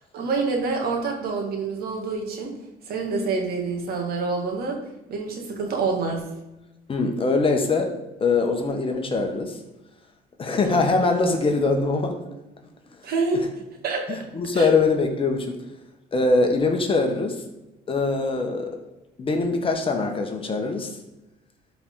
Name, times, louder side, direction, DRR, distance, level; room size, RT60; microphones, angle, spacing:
voice 1, 0.1-2.5 2.9-4.8 5.1-6.3 10.6-11.0 13.0-13.5 13.8-14.2 14.5-14.7, right 4 dB, 65° right, 2 dB, 2.2 m, -27 dB
voice 2, 6.9-7.9 8.2-9.6 10.4-12.2 14.1-15.5 16.1-17.4 17.9-18.8 19.2-20.9, left 3 dB, 30° left, 4 dB, 1.4 m, -22 dB
12.5 x 4.8 x 4.0 m, 0.96 s
cardioid pair, 110°, 17 cm